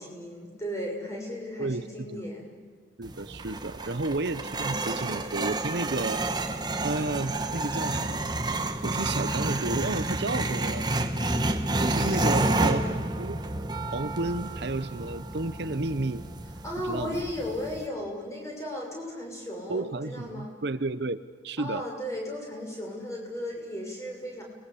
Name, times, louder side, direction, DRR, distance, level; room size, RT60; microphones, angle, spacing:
voice 1, 0.0-2.5 12.0-13.0 16.6-20.5 21.6-24.4, left 1 dB, 15° left, -1 dB, 6.5 m, -35 dB
voice 2, 1.6-2.3 3.0-6.2 6.8-8.2 8.8-10.9 11.8-13.4 13.9-16.2 16.9-17.2 19.7-21.9, right 2 dB, 60° right, 12 dB, 0.8 m, -32 dB
sound 1, 3.0-17.9, right 2 dB, 20° right, 1.4 m, -30 dB
30.0 x 21.5 x 8.5 m, 1.5 s
head